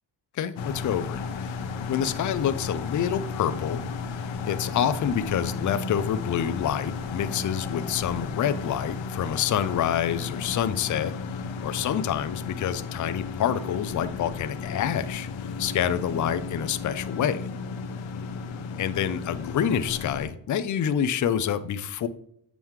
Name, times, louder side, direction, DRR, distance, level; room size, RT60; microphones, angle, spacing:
voice 1, 0.3-1.6 1.9-3.8 4.1-11.1 11.6-15.3 15.6-17.5 18.8-22.1, left 9 dB, 40° left, 12 dB, 0.5 m, -27 dB
sound 1, 0.6-20.3, left 5 dB, 75° left, 0.9 m, -34 dB
7.3 x 5.3 x 3.1 m, 0.70 s
cardioid pair, 115°, 46 cm